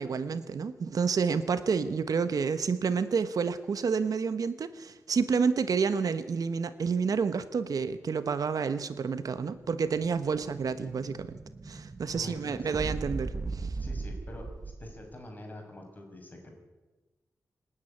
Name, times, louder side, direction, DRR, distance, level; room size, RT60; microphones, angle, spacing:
voice 1, 0.0-11.4 11.6-13.7, right 5 dB, 75° right, 12 dB, 1.1 m, -29 dB
Explosion, 9.4-15.1, right 3 dB, 35° right, 1.0 m, -39 dB
voice 2, 12.1-12.8 13.8-14.5 14.8-16.5, left 1 dB, 30° left, 2 dB, 5.9 m, -45 dB
27.0 x 9.8 x 9.9 m, 1.1 s
wide cardioid pair, 135°, 6 cm